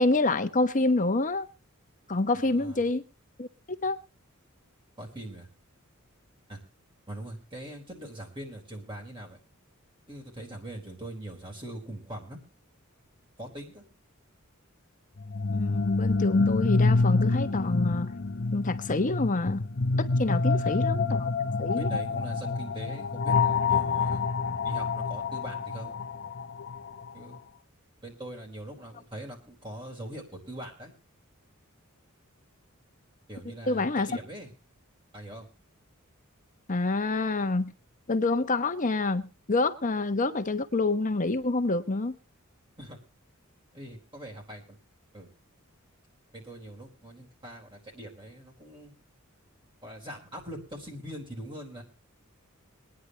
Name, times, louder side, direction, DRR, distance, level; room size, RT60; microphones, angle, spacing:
voice 1, 0.0-1.5 2.1-3.0 3.4-3.5 3.8-4.0 15.5-18.1 18.5-19.6 20.0-21.3 21.6-21.9 33.7-34.1 36.7-37.7 38.1-42.2, left 2 dB, 40° left, 1.1 m, -27 dB
voice 2, 2.3-2.8 5.0-5.5 6.5-6.6 7.1-9.4 10.1-12.4 13.4-13.8 20.4-20.8 21.7-24.3 24.6-26.0 27.1-27.4 28.0-30.9 33.3-34.5 35.1-35.5 42.8-43.0 43.7-44.8 45.1-45.3 46.3-48.9 49.8-51.8, right 1 dB, 25° right, 4.2 m, -42 dB
sound 1, 15.2-27.0, left 4 dB, 55° left, 0.8 m, -27 dB
24.5 x 9.9 x 2.9 m
head